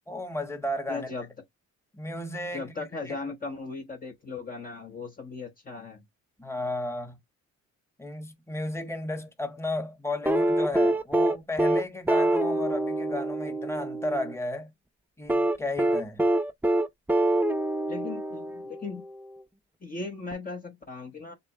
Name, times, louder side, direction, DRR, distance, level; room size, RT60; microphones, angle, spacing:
voice 1, 0.1-1.1 1.9-2.7 3.1-3.2 6.4-7.2 8.0-14.7 15.2-16.2, left 1 dB, 10° left, 1.3 m, -33 dB
voice 2, 0.9-1.3 2.5-6.0 17.9-19.0 19.8-21.3, left 4 dB, 30° left, 1.1 m, -37 dB
sound 1, 10.3-14.3 15.3-18.9 20.3-20.4, right 1 dB, 5° right, 0.5 m, -25 dB
6.6 x 2.2 x 3.1 m
cardioid pair, 90°, 30 cm